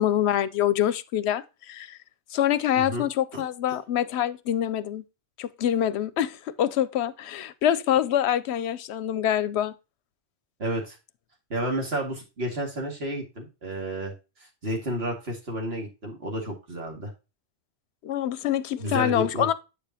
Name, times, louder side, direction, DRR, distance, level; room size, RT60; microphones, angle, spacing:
voice 1, 0.0-2.0 2.3-5.0 5.4-9.7 18.0-19.5, left 11 dB, 70° left, 0.8 m, -25 dB
voice 2, 10.6-11.0 11.5-14.1 14.4-17.1 18.8-19.5, right 1 dB, 60° right, 2.4 m, -31 dB
8.2 x 6.8 x 2.8 m
omnidirectional pair, 1.2 m